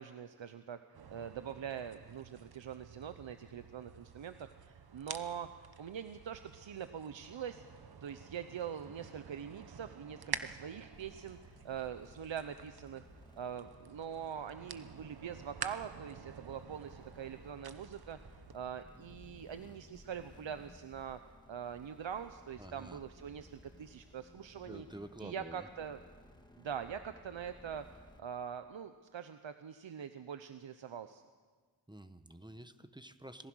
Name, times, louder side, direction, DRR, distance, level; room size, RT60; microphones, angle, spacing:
voice 1, 0.0-5.5 5.8-7.6 8.0-13.1 13.4-21.2 21.5-24.9 25.2-26.0 26.6-31.2, right 8 dB, 80° right, 9 dB, 0.9 m, -43 dB
sound 1, 0.9-18.6, right 6 dB, 55° right, 1.1 m, -49 dB
sound 2, 10.9-28.2, left 1 dB, 10° left, 1.9 m, -59 dB
voice 2, 22.6-23.0 24.7-25.7 31.9-33.5, right 1 dB, 10° right, 10 dB, 1.0 m, -49 dB
26.5 x 19.5 x 6.3 m, 1.5 s
wide cardioid pair, 105°, 45 cm